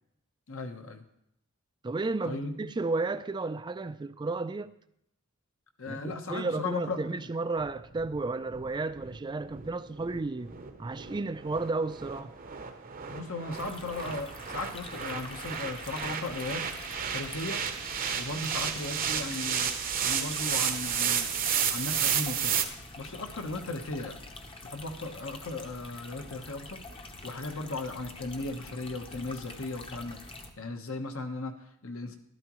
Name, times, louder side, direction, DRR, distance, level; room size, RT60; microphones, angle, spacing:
voice 1, 0.5-1.0 2.2-2.7 5.8-7.0 13.1-16.6 17.1-17.6 18.2-19.7 20.0-21.4 21.7-22.6 23.0-24.2 24.6-26.8 27.2-30.2 30.6-32.2, left 2 dB, 65° left, 1.1 m, -36 dB
voice 2, 1.8-4.7 5.9-10.5 10.8-12.3, right 3 dB, 20° right, 0.3 m, -33 dB
sound 1, 7.6-22.7, right 8 dB, 40° right, 0.8 m, -32 dB
sound 2, 13.5-30.5, left 2 dB, 25° left, 0.8 m, -46 dB
12.0 x 12.0 x 3.1 m
head